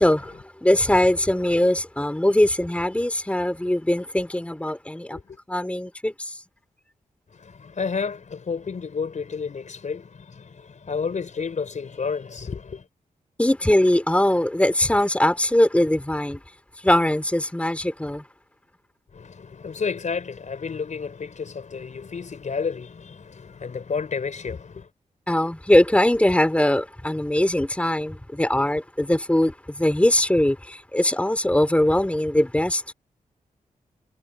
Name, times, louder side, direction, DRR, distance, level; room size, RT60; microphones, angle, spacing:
voice 1, 0.0-5.2 5.5-6.4 13.4-16.4 16.8-18.2 25.3-32.9, left 1 dB, 10° left, 3.5 m, -21 dB
voice 2, 7.3-12.9 19.1-24.9, left 5 dB, 60° left, 5.2 m, -31 dB
cardioid pair, 80°, 14 cm